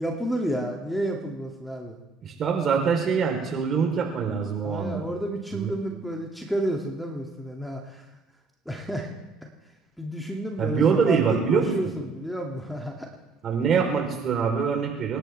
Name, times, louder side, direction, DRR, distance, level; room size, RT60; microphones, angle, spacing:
voice 1, 0.0-2.0 4.6-8.0 8.7-9.1 10.0-13.1, right 1 dB, 5° left, 1 dB, 2.3 m, -30 dB
voice 2, 2.2-5.0 5.5-5.8 10.6-11.7 13.4-15.2, right 6 dB, 40° right, 2 dB, 3.6 m, -24 dB
27.0 x 10.5 x 3.4 m, 1.0 s
hypercardioid pair, 70°, 0 cm